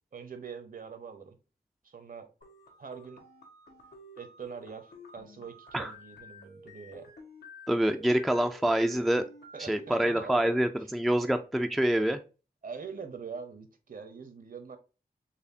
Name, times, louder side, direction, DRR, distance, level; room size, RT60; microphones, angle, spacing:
voice 1, 0.1-1.4 1.8-2.3 2.8-3.2 4.2-7.1 9.5-10.5 12.6-14.8, right 6 dB, 55° right, 0.8 m, -43 dB
sound 1, 2.4-10.4, left 1 dB, 90° left, 1.3 m, -51 dB
voice 2, 7.7-9.2 9.6-12.2, right 1 dB, ahead, 0.3 m, -26 dB
4.2 x 3.1 x 2.7 m
wide cardioid pair, 90°, 17 cm